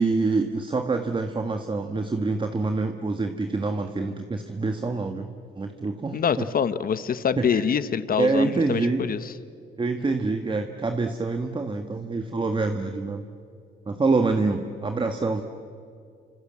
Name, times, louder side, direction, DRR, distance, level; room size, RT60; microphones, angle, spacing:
voice 1, 0.0-5.3 5.6-6.5 7.4-7.6 8.2-9.0 9.8-13.2 13.8-15.4, right 3 dB, 25° right, 6 dB, 1.6 m, -26 dB
voice 2, 6.1-9.3, left 7 dB, 45° left, 14 dB, 1.2 m, -25 dB
29.0 x 26.0 x 7.6 m, 2.4 s
cardioid pair, 90°, 20 cm